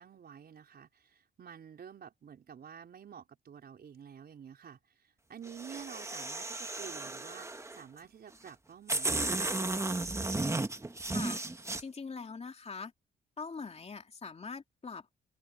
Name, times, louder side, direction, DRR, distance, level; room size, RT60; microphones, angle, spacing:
voice 1, 0.0-9.7, right 8 dB, 50° right, 4.5 m, -50 dB
sound 1, 5.5-7.8 8.5-8.6 8.9-11.8, right 2 dB, 15° right, 1.4 m, -34 dB
voice 2, 11.1-11.4 11.8-12.9 13.4-15.1, left 4 dB, 30° left, 3.0 m, -42 dB
open air
cardioid pair, 90°, 20 cm